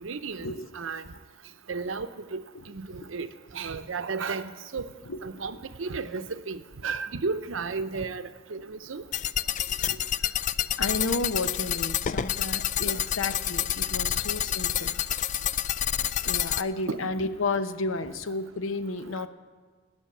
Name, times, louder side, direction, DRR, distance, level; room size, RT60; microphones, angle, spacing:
voice 1, 0.0-1.0 1.7-2.4 2.7-3.3 3.5-4.9 5.2-9.0 16.9-17.0, right 4 dB, 80° right, 11 dB, 0.7 m, -33 dB
voice 2, 5.1-5.4 9.7-10.4 10.8-14.9 16.2-19.3, left 3 dB, 90° left, 10 dB, 0.8 m, -32 dB
sound 1, 9.1-16.6, left 10 dB, 40° left, 0.3 m, -28 dB
17.5 x 6.3 x 9.7 m, 1.5 s
head